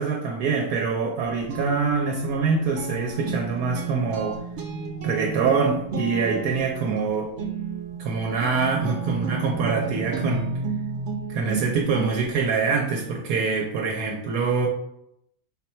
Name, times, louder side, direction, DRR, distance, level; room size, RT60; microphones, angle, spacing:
voice 1, 0.0-4.4 5.0-7.3 8.0-10.5 11.3-14.7, right 5 dB, 85° right, 0 dB, 1.1 m, -25 dB
Guitar, 1.1-12.4, right 4 dB, 65° right, 0.8 m, -32 dB
4.0 x 2.2 x 4.2 m, 0.78 s
omnidirectional pair, 1.6 m